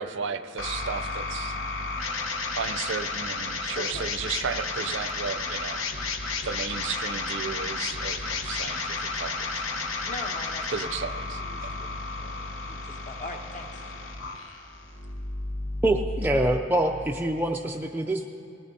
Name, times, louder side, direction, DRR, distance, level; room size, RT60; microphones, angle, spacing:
voice 1, 0.0-1.6 2.6-5.8 6.4-9.9 10.7-11.7, right 6 dB, 65° right, 10 dB, 0.5 m, -34 dB
sound 1, 0.6-16.6, left 3 dB, 80° left, 1.0 m, -32 dB
voice 2, 9.7-10.8 11.4-11.6 12.2-13.7, left 2 dB, 35° left, 3 dB, 1.0 m, -40 dB
voice 3, 15.8-18.3, right 1 dB, 10° right, 1 dB, 0.3 m, -25 dB
20.0 x 17.0 x 2.7 m, 2.6 s
head